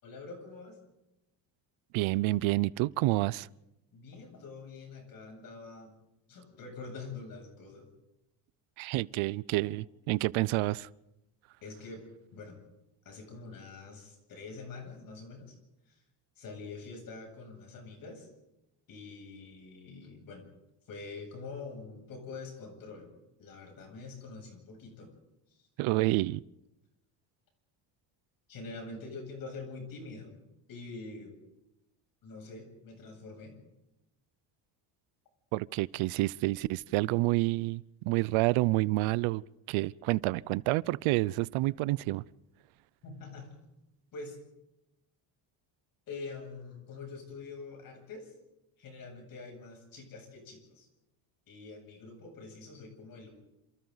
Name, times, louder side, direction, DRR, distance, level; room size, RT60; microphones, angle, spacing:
voice 1, 0.0-0.8 3.9-5.9 6.3-7.9 11.6-12.0 12.3-12.6 13.0-15.6 15.9-16.0 16.4-18.3 18.9-20.4 20.9-23.1 23.4-25.1 25.5-25.7 28.5-30.3 30.7-31.3 32.2-33.6 43.0-43.5 44.1-44.4 46.1-48.3 48.8-50.9 51.5-53.3, left 4 dB, 45° left, 7.9 m, -45 dB
voice 2, 1.9-3.5 8.8-10.9 25.8-26.4 35.5-39.4 39.7-42.2, right 20 dB, 80° right, 0.7 m, -28 dB
28.5 x 27.5 x 4.1 m
cardioid pair, 170°, 48 cm